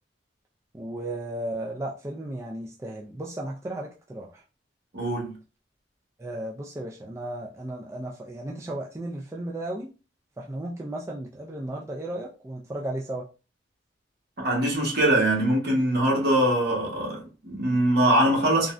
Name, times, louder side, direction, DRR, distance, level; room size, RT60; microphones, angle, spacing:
voice 1, 0.7-4.4 6.2-9.9 10.4-13.2, right 1 dB, 15° right, 0.3 m, -35 dB
voice 2, 4.9-5.3 14.4-18.7, right 1 dB, 60° right, 1.2 m, -23 dB
3.6 x 2.1 x 2.4 m
head